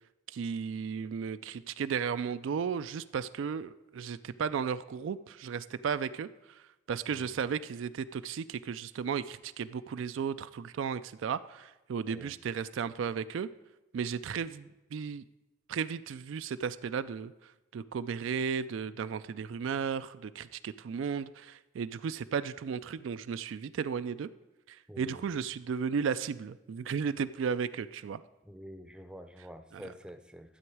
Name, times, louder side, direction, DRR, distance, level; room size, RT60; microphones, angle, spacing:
voice 1, 0.3-6.6 6.9-13.5 13.9-15.2 15.7-24.3 24.7-28.2 29.7-29.8, right 6 dB, 75° right, 12 dB, 0.3 m, -34 dB
voice 2, 24.9-25.3 28.4-30.6, equal, 5° right, 8 dB, 0.5 m, -48 dB
13.0 x 7.9 x 4.7 m, 1.0 s
head